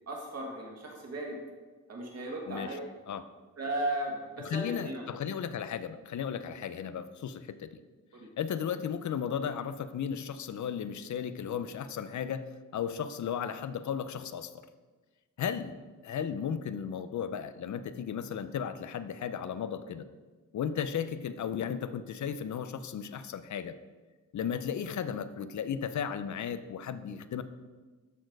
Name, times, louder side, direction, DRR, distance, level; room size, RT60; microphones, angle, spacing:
voice 1, 0.1-1.4 1.9-2.8 3.6-5.1 8.1-8.3, right 1 dB, 50° right, -1 dB, 2.0 m, -36 dB
voice 2, 2.5-2.8 3.1-3.3 4.4-7.8 8.4-14.6 15.4-20.1 20.5-23.8 24.3-27.4, left 8 dB, 65° left, 12 dB, 0.6 m, -35 dB
13.0 x 4.4 x 4.7 m, 1.3 s
wide cardioid pair, 150°, 32 cm